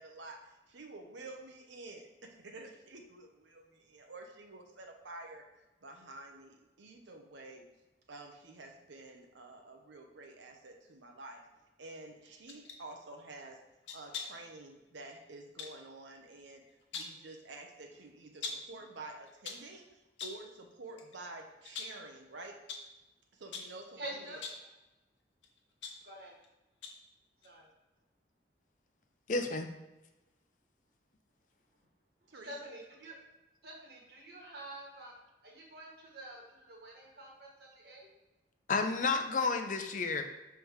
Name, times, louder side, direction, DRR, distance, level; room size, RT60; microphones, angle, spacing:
voice 1, 0.0-5.4 5.8-7.6 8.1-11.4 11.8-13.6 13.9-16.6 16.9-22.6 23.3-24.3 32.3-32.5, right 2 dB, 85° right, 3 dB, 0.8 m, -49 dB
sound 1, 12.5-12.8 13.9-14.5 15.6-15.8 16.7-17.2 18.4-18.8 19.3-19.7 20.2-20.5 21.0-21.2 21.6-22.1 22.7-22.9 23.5-23.8 24.3-24.7 25.4-26.5 26.8-27.1 27.4-27.5, left 5 dB, 90° left, 0.9 m, -43 dB
voice 2, 24.0-24.4 26.0-26.4 27.4-27.7 32.4-33.1 33.6-35.1 35.4-38.1, right 1 dB, 55° right, -1 dB, 1.7 m, -47 dB
voice 3, 29.3-29.7 38.7-40.2, left 4 dB, 45° left, 6 dB, 0.5 m, -31 dB
6.2 x 3.4 x 4.7 m, 1.0 s
head